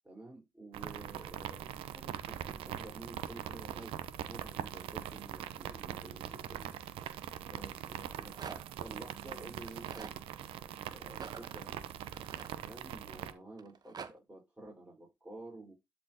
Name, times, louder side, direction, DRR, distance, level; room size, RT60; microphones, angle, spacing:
voice 1, 0.0-4.0 4.3-6.7 7.4-11.8 12.2-15.7, right 2 dB, 15° right, 4.4 m, -51 dB
sound 1, 0.7-13.3, right 11 dB, 85° right, 0.9 m, -42 dB
Rattle, 8.1-8.8 9.6-10.2 11.1-13.1 13.6-14.1, right 6 dB, 45° right, 1.1 m, -48 dB
12.0 x 4.6 x 2.9 m
supercardioid pair, 65°, 9 cm